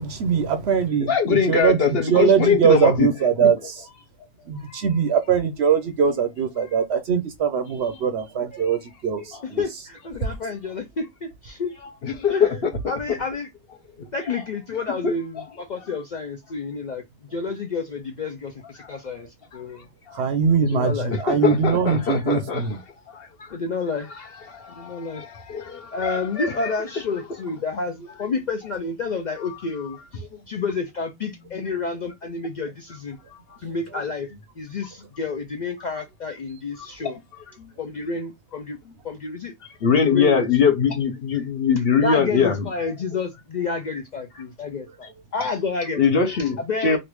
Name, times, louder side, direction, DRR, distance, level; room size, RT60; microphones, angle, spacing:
voice 1, 0.0-3.7 4.5-9.6 20.1-22.8, right 7 dB, 60° right, 0.7 m, -21 dB
voice 2, 1.0-3.1 3.4-3.5 4.7-4.9 7.9-8.0 9.3-9.4 12.0-12.7 15.0-15.4 18.8-18.9 20.1-20.2 21.1-22.8 23.1-23.6 24.5-26.7 37.0-37.1 37.6-37.7 39.8-42.7 46.0-47.0, left 6 dB, 55° left, 0.8 m, -22 dB
voice 3, 9.4-11.7 12.3-12.6 12.9-13.5 14.1-17.0 17.3-19.3 19.5-19.8 20.6-21.1 23.5-24.1 24.7-25.2 25.9-33.2 33.6-34.3 34.6-37.2 37.8-38.8 39.0-39.5 40.0-40.7 42.0-46.2 46.6-47.0, left 4 dB, 85° left, 0.4 m, -29 dB
3.2 x 2.5 x 3.0 m
omnidirectional pair, 1.4 m